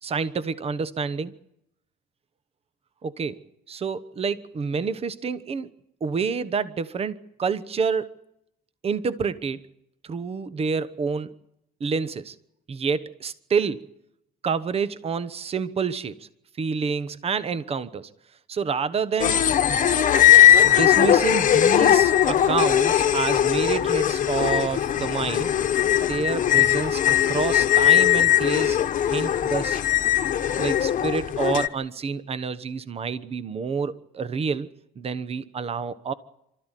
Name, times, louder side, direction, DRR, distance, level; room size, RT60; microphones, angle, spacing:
voice 1, 0.0-1.3 3.0-3.4 3.7-5.7 6.0-8.1 8.8-9.6 10.0-11.3 11.8-12.3 12.7-13.9 14.4-16.3 16.6-18.1 18.5-19.9 20.6-25.5 26.1-28.8 29.1-29.8 30.5-34.7 35.0-36.1, right 5 dB, 35° right, 1.2 m, -28 dB
sound 1, 19.2-31.7, left 11 dB, 50° left, 1.2 m, -19 dB
28.5 x 13.5 x 9.2 m
cardioid pair, 110°, 17 cm